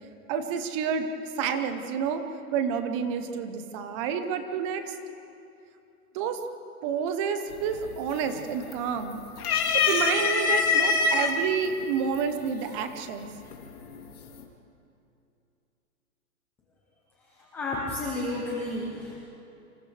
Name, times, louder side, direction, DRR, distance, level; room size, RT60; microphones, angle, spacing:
voice 1, 0.3-1.1 1.4-2.2 2.5-4.9 6.1-6.4 6.8-9.2 9.7-13.3, right 7 dB, 20° right, 8 dB, 0.9 m, -29 dB
sound 1, 7.5-7.9 8.3-9.0 9.4-11.3 12.2-12.3 13.5-14.0, left 4 dB, 70° left, 3.1 m, -24 dB
voice 2, 17.5-19.2, left 2 dB, 5° left, -4 dB, 0.5 m, -31 dB
28.5 x 26.5 x 3.4 m, 2.7 s
hypercardioid pair, 155°, 45 cm